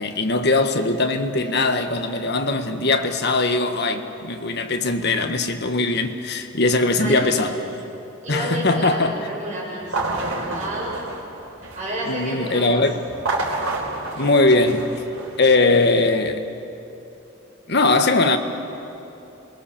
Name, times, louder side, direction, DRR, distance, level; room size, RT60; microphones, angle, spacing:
voice 1, 0.0-7.6 8.3-9.3 12.1-13.0 14.2-14.9 15.4-16.5 17.7-18.4, left 2 dB, 50° left, 1.4 m, -20 dB
voice 2, 7.0-7.6 8.2-10.9 11.7-12.8, right 1 dB, 35° right, 7.5 m, -30 dB
sound 1, 9.8-12.0 13.1-15.6, right 2 dB, 90° right, 4.1 m, -29 dB
27.0 x 21.0 x 7.2 m
head